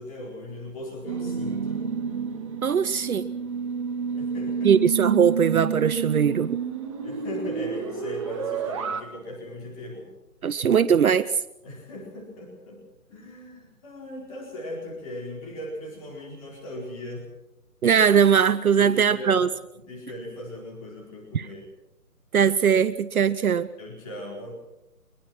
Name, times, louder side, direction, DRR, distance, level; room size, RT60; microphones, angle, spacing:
voice 1, 0.0-1.9 4.1-4.8 7.0-10.1 11.6-12.8 13.1-17.3 18.7-19.5 19.7-21.7 23.8-24.5, left 1 dB, 20° left, -1 dB, 4.5 m, -38 dB
sound 1, 1.1-9.0, right 6 dB, 20° right, 1.1 m, -29 dB
voice 2, 2.6-3.3 4.6-6.6 10.4-11.3 17.8-19.5 21.3-21.5 22.3-23.7, right 7 dB, 65° right, 13 dB, 0.9 m, -20 dB
23.0 x 22.0 x 6.0 m, 0.89 s
hypercardioid pair, 160°, 46 cm